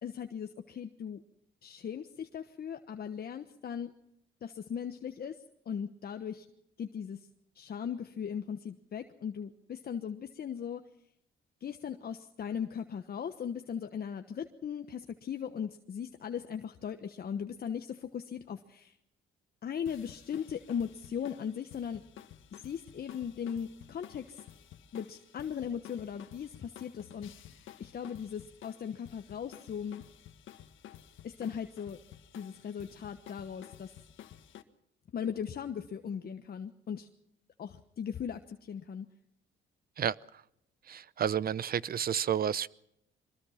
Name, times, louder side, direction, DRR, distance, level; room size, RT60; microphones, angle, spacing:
voice 1, 0.0-1.2 1.6-3.9 4.4-5.4 5.6-6.5 6.8-7.3 7.5-10.8 11.6-19.0 19.6-22.0 22.5-24.4 24.9-27.3 27.8-30.0 31.2-32.0 32.3-33.9 35.1-37.1 37.6-39.1, left 8 dB, 50° left, 6 dB, 1.2 m, -38 dB
sound 1, 19.9-34.6, left 10 dB, 80° left, 1.7 m, -53 dB
voice 2, 40.9-42.7, right 9 dB, 50° right, 19 dB, 0.8 m, -30 dB
24.0 x 20.5 x 5.8 m, 0.77 s
cardioid pair, 90°, 20 cm